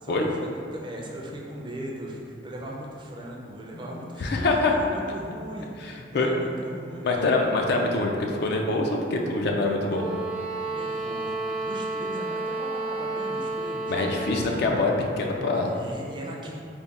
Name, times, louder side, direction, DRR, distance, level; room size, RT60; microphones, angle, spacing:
voice 1, 0.0-0.4 0.7-7.3 10.6-13.9 14.3-14.5 15.6-16.6, right 1 dB, 25° right, -2 dB, 0.4 m, -39 dB
voice 2, 4.2-4.7 5.8-6.3 7.0-10.1 13.9-15.7, left 2 dB, 60° left, 1 dB, 0.4 m, -25 dB
sound 1, 9.8-14.6, right 2 dB, 85° right, 0.4 m, -31 dB
3.5 x 2.1 x 4.0 m, 2.4 s
head